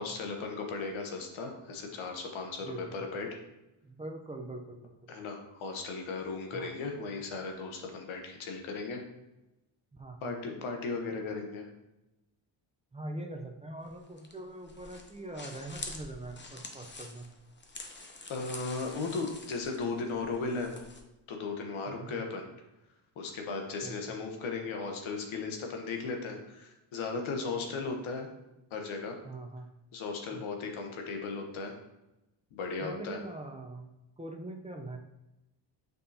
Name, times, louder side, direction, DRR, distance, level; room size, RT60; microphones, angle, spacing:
voice 1, 0.0-3.3 5.1-9.0 10.2-11.7 18.3-20.7 21.3-22.4 23.2-28.3 28.7-29.2 29.9-31.7 32.5-33.2, left 4 dB, 85° left, 3 dB, 1.1 m, -36 dB
voice 2, 2.6-3.1 3.8-5.1 6.5-6.7 9.9-10.3 12.9-17.3 21.9-22.2 23.8-24.1 29.2-29.6 30.3-30.5 32.8-33.9 34.2-35.0, right 2 dB, 15° right, 3 dB, 0.6 m, -43 dB
sound 1, 13.8-21.0, left 3 dB, 25° left, 0.8 m, -47 dB
6.5 x 5.3 x 2.8 m, 0.96 s
cardioid pair, 100°, 47 cm